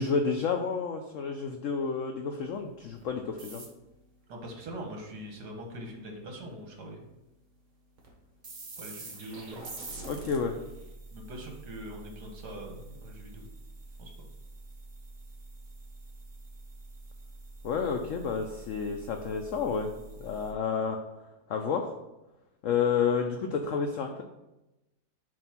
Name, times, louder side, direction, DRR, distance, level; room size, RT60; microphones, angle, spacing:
voice 1, 0.0-3.7 10.0-10.5 17.6-19.9 20.2-21.0 21.5-21.9 22.6-24.2, left 6 dB, 75° left, 4 dB, 0.7 m, -30 dB
sound 1, 2.9-3.0 3.4-4.0 8.0-8.1 8.4-20.5, right 2 dB, 55° right, 1.5 m, -46 dB
voice 2, 4.3-7.1 8.8-9.7 11.1-13.5 14.0-14.3, right 1 dB, 70° right, 1 dB, 1.7 m, -42 dB
7.4 x 2.6 x 5.8 m, 0.96 s
omnidirectional pair, 1.9 m